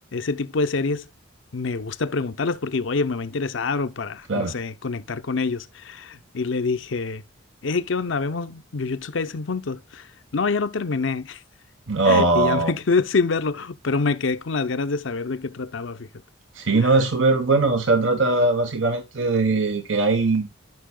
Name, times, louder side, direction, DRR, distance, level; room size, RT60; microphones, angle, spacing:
voice 1, 0.1-1.1 1.5-7.2 7.6-11.4 12.1-16.1, left 4 dB, 75° left, 0.7 m, -26 dB
voice 2, 11.9-12.7 16.5-20.5, right 3 dB, 75° right, 1.1 m, -20 dB
14.0 x 5.6 x 2.3 m
head